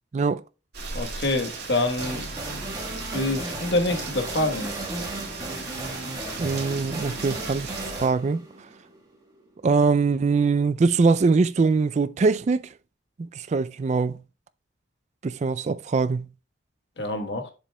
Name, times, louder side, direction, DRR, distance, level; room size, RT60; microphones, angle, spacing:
Rain, 0.7-8.1, right 4 dB, 55° right, 2.3 m, -37 dB
voice 1, 0.9-2.2 3.1-4.8 17.0-17.5, left 2 dB, 60° left, 1.3 m, -26 dB
sound 1, 2.0-9.4, right 1 dB, 20° right, 1.5 m, -35 dB
voice 2, 6.4-8.4 9.6-12.6 13.2-14.2 15.2-16.3, right 4 dB, 35° right, 0.3 m, -22 dB
7.6 x 7.0 x 2.2 m
head